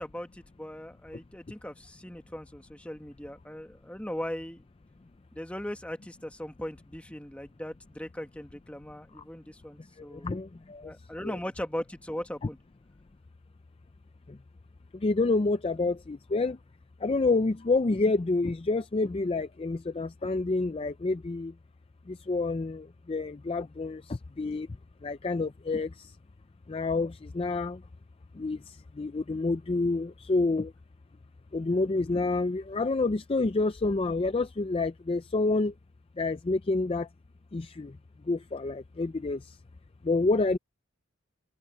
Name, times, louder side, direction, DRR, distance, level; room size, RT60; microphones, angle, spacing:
voice 1, 0.0-4.6 5.3-10.3 10.8-12.6, equal, 5° left, 1.5 m, -39 dB
voice 2, 10.1-10.9 11.2-11.4 15.0-16.6 17.0-21.5 22.1-24.7 25.0-26.1 26.7-27.8 28.4-28.6 29.0-30.7 31.5-35.7 36.2-37.1 37.5-37.9 38.3-39.4 40.0-40.6, left 3 dB, 25° left, 0.4 m, -28 dB
open air
head